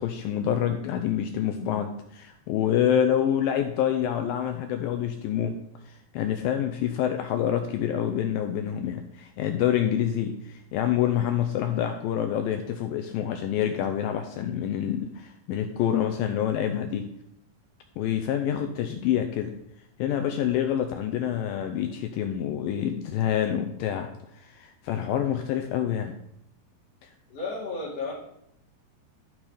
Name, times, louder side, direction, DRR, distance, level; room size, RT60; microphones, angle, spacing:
voice 1, 0.0-5.6 5.9-17.1 18.0-19.5 20.0-24.1 24.3-26.1 27.0-27.1, left 10 dB, 85° left, 6 dB, 2.1 m, -27 dB
voice 2, 27.3-28.1, left 3 dB, 40° left, -5 dB, 3.6 m, -33 dB
12.5 x 6.2 x 5.0 m, 0.77 s
omnidirectional pair, 4.7 m